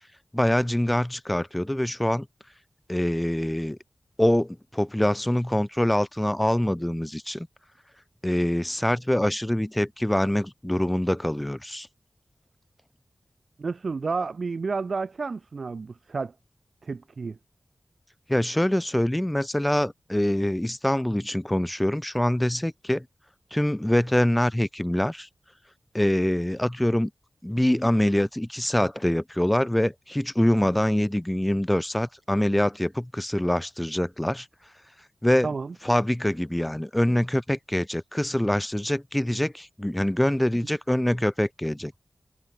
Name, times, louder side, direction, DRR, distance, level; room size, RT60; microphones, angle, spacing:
voice 1, 0.3-2.3 2.9-3.8 4.2-7.5 8.2-11.9 18.3-23.0 23.5-25.3 25.9-27.1 27.4-34.5 35.2-35.5 35.8-42.0, left 1 dB, 10° left, 1.3 m, -24 dB
voice 2, 13.6-16.3 16.8-17.4 35.4-35.7, right 4 dB, 75° right, 1.2 m, -31 dB
cardioid pair, 50°, 0 cm